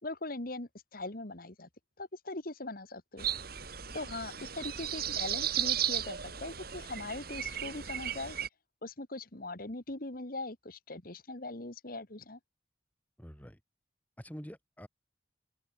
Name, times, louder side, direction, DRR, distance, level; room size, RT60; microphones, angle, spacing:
voice 1, 0.0-1.7 2.0-3.3 3.9-8.4 8.8-12.4, left 2 dB, 50° left, 2.0 m, -41 dB
sound 1, 3.2-8.5, right 9 dB, 55° right, 3.7 m, -35 dB
voice 2, 13.2-13.6 14.2-14.9, equal, 10° left, 4.9 m, -46 dB
open air
head